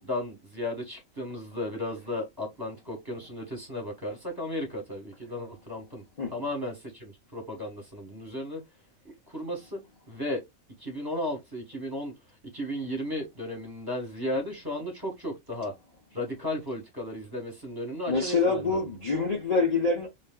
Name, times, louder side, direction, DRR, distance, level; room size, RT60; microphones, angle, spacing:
voice 1, 0.0-6.0 6.3-8.6 9.0-9.8 10.1-10.4 10.8-12.1 12.5-15.7 16.1-18.8, left 1 dB, 15° right, 1.4 m, -34 dB
voice 2, 18.1-20.1, left 3 dB, 35° left, 0.8 m, -26 dB
4.1 x 3.2 x 2.3 m
omnidirectional pair, 1.4 m